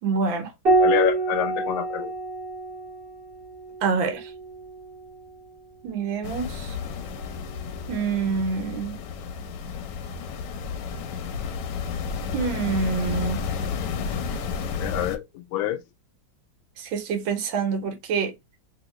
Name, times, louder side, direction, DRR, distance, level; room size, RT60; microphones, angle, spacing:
voice 1, 0.0-0.5 3.8-4.3 5.8-6.8 7.9-9.0 12.3-13.4 16.8-18.3, right 5 dB, 80° right, 1.5 m, -26 dB
Piano, 0.6-5.5 7.1-7.9, right 2 dB, 35° right, 1.1 m, -27 dB
voice 2, 0.8-2.1 14.8-15.8, left 12 dB, 90° left, 1.4 m, -27 dB
sound 1, 6.2-15.2, left 6 dB, 75° left, 1.2 m, -32 dB
3.0 x 2.8 x 3.0 m
omnidirectional pair, 2.1 m